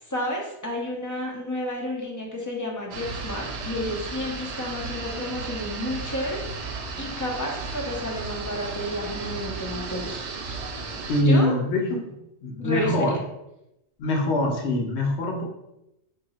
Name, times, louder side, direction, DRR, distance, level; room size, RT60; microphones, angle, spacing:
voice 1, 0.1-10.2 11.2-11.6 12.6-13.1, left 1 dB, 30° left, -2 dB, 0.4 m, -31 dB
sound 1, 2.9-11.2, right 4 dB, 80° right, 0.9 m, -34 dB
voice 2, 11.0-12.1 12.4-13.2 14.0-15.4, left 1 dB, 75° left, 1 dB, 0.9 m, -23 dB
2.8 x 2.6 x 4.0 m, 0.87 s
omnidirectional pair, 1.2 m